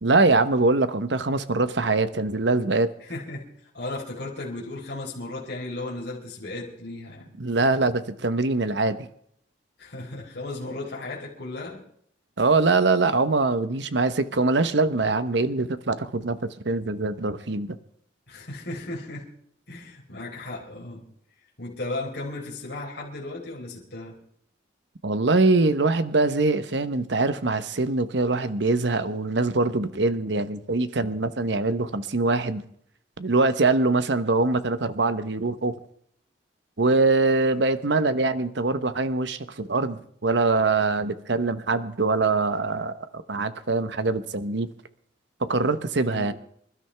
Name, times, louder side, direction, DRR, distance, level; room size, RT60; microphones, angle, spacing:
voice 1, 0.0-2.9 7.4-9.0 12.4-17.8 25.0-32.6 33.2-35.7 36.8-44.7 45.5-46.3, right 3 dB, 65° right, 1.0 m, -23 dB
voice 2, 3.0-3.5 3.7-7.3 9.8-11.8 18.3-19.3 19.7-21.1 21.6-24.2 46.0-46.3, left 2 dB, 60° left, 3.9 m, -35 dB
26.5 x 12.5 x 3.4 m
head